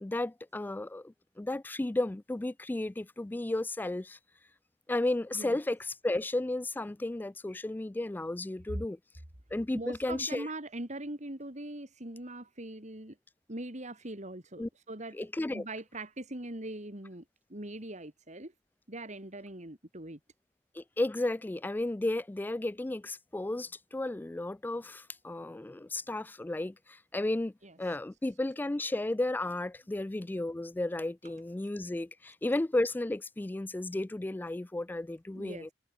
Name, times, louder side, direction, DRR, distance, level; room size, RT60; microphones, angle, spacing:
voice 1, 0.0-4.2 4.9-9.0 9.5-10.5 14.6-14.7 15.1-15.6 20.8-27.5 27.8-35.7, left 2 dB, 10° left, 0.3 m, -33 dB
voice 2, 9.7-13.2 13.5-15.2 15.5-17.2 17.5-18.5 18.9-20.2 27.6-28.0 35.3-35.7, right 1 dB, 40° right, 3.7 m, -41 dB
head